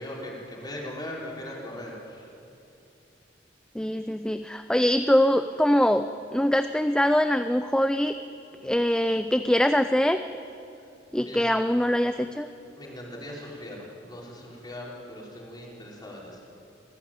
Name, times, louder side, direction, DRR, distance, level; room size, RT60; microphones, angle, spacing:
voice 1, 0.0-2.3 11.2-11.5 12.8-16.4, left 1 dB, 25° left, -3 dB, 4.8 m, -39 dB
voice 2, 3.7-6.1 6.3-8.1 8.6-10.2 11.1-12.5, equal, 5° left, 9 dB, 0.5 m, -23 dB
25.0 x 15.5 x 9.0 m, 2.7 s
head